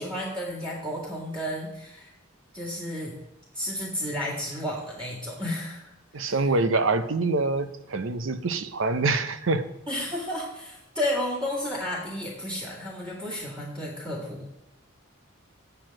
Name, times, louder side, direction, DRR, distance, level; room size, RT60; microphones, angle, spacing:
voice 1, 0.0-2.1 2.5-3.2 3.5-5.9 6.2-6.3 9.9-14.6, left 1 dB, 25° right, -7 dB, 2.2 m, -32 dB
voice 2, 6.1-9.7, right 3 dB, 70° right, 11 dB, 0.7 m, -25 dB
7.8 x 6.9 x 7.5 m, 0.86 s
head